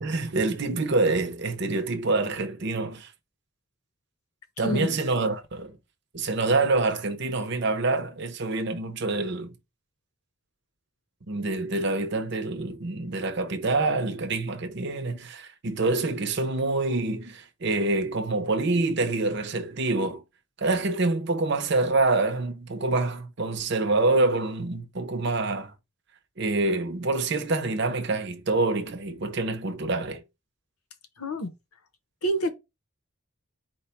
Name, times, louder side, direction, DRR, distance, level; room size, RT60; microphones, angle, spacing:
voice 1, 0.0-3.1 4.6-5.8 6.1-9.5 11.3-20.2 20.6-25.7 26.4-30.2, right 3 dB, 50° right, 0.7 m, -26 dB
voice 2, 31.2-31.5 32.2-32.5, equal, 85° left, 0.8 m, -27 dB
4.5 x 2.2 x 4.3 m
head